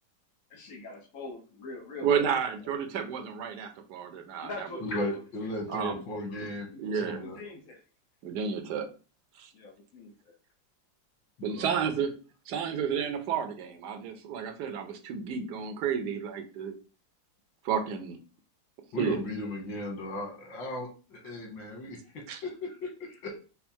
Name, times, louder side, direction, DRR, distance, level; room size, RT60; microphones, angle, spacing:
voice 1, 0.5-2.4 4.4-5.1 5.4-5.8 6.7-6.9 7.2-7.8 9.5-10.3, left 3 dB, 55° left, -1 dB, 1.1 m, -44 dB
voice 2, 2.0-4.7 5.7-6.0 6.3-6.4 6.8-7.2 8.2-8.9 9.4-9.5 11.4-12.1 12.5-16.7 17.6-18.2 19.0-19.2 22.3-22.4, right 7 dB, 70° right, 6 dB, 1.2 m, -31 dB
voice 3, 4.8-7.4 11.4-11.9 18.9-22.0 22.4-23.3, left 1 dB, 90° left, 1 dB, 2.2 m, -36 dB
5.5 x 2.1 x 4.3 m, 0.35 s
omnidirectional pair, 2.0 m